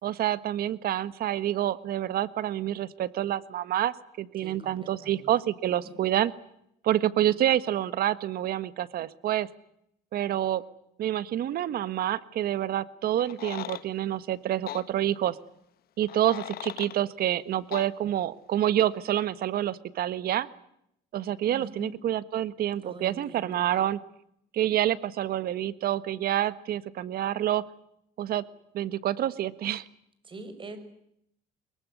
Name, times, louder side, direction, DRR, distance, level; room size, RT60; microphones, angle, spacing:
voice 1, 0.0-6.3 6.8-9.5 10.1-10.6 11.0-15.3 16.0-20.5 21.1-24.0 24.5-27.6 28.2-28.4 28.7-29.8, right 12 dB, 65° right, 15 dB, 1.6 m, -28 dB
voice 2, 4.4-5.3 5.8-5.9 21.4-21.9 22.8-23.7 30.2-30.8, right 2 dB, 30° right, 11 dB, 6.1 m, -44 dB
sound 1, 13.2-13.8 14.7-14.8 16.0-17.0 17.7-17.9, left 13 dB, 65° left, 1.4 m, -38 dB
24.0 x 22.5 x 9.6 m, 0.75 s
cardioid pair, 110°, 17 cm